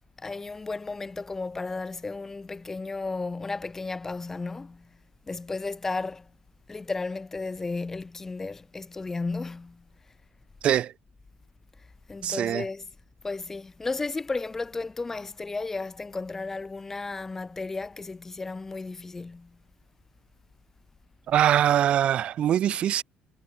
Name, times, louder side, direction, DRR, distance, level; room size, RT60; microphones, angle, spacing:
voice 1, 0.2-4.9 5.3-6.3 6.7-9.8 12.1-12.9 13.2-19.6, left 3 dB, 15° left, 3.0 m, -34 dB
voice 2, 12.2-12.6 21.3-23.0, right 11 dB, 45° right, 4.0 m, -23 dB
cardioid pair, 170°, 3 cm